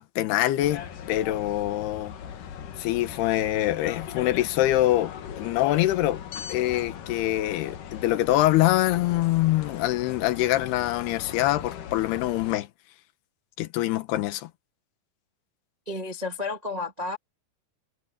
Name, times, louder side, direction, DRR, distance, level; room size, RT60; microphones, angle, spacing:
voice 1, 0.0-2.1 2.8-6.2 6.5-12.7 13.6-14.5, left 15 dB, 75° left, 3.0 m, -24 dB
sound 1, 0.6-12.5, left 8 dB, 60° left, 2.8 m, -39 dB
voice 2, 15.8-17.2, left 3 dB, 80° right, 0.3 m, -31 dB
omnidirectional pair, 4.9 m